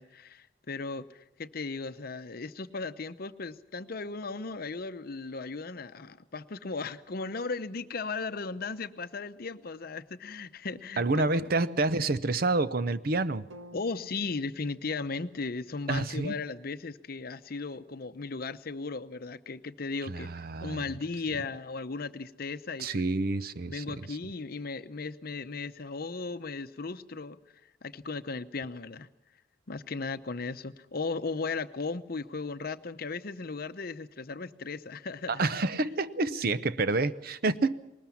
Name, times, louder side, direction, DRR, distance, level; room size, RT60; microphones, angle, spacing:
voice 1, 0.0-11.5 13.7-20.3 20.6-23.1 23.7-27.4 27.8-29.1 29.7-35.5, left 4 dB, 50° left, 11 dB, 0.8 m, -36 dB
voice 2, 11.0-13.5 15.9-16.3 20.1-20.8 22.8-24.0 35.3-37.7, right 3 dB, 50° right, 14 dB, 0.7 m, -28 dB
sound 1, 13.5-17.6, right 1 dB, 80° right, 1.8 m, -55 dB
20.0 x 19.5 x 7.1 m, 0.96 s
head